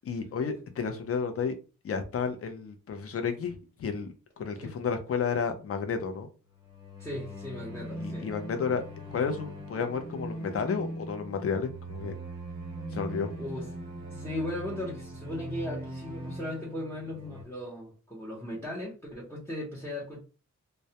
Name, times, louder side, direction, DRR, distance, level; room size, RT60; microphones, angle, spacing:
voice 1, 0.0-1.6 1.8-4.1 4.4-6.3 8.0-8.8 9.1-12.1 12.9-13.3, left 6 dB, 45° left, 0.5 m, -31 dB
sound 1, 6.5-17.4, right 1 dB, 15° right, 0.9 m, -40 dB
voice 2, 7.0-8.3 13.4-13.7 14.1-20.2, left 1 dB, 10° left, 0.7 m, -37 dB
2.2 x 2.0 x 2.7 m
wide cardioid pair, 165°, 31 cm